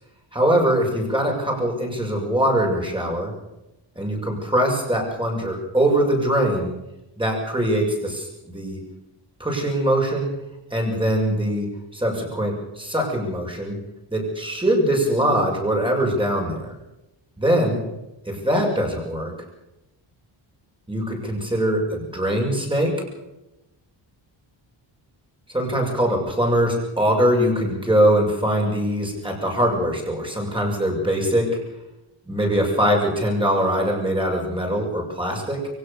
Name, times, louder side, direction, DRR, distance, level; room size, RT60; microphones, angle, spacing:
voice 1, 0.3-3.3 4.0-6.7 7.2-8.8 9.4-10.3 10.7-13.8 14.1-16.7 17.4-17.8 18.3-19.3 20.9-23.0 25.5-31.6 32.3-35.7, right 1 dB, 10° right, 0 dB, 7.0 m, -22 dB
23.5 x 17.0 x 6.9 m, 0.95 s
wide cardioid pair, 120°, 47 cm